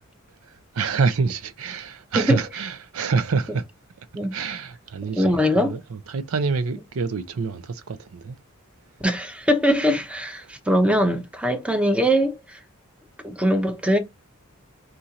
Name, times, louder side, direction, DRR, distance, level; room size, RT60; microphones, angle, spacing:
voice 1, 0.4-3.7 4.3-8.4 10.4-10.5, right 4 dB, 75° right, 0.5 m, -27 dB
voice 2, 5.1-5.7 9.0-12.6 13.2-14.0, equal, 5° right, 0.7 m, -21 dB
4.3 x 2.5 x 4.0 m
head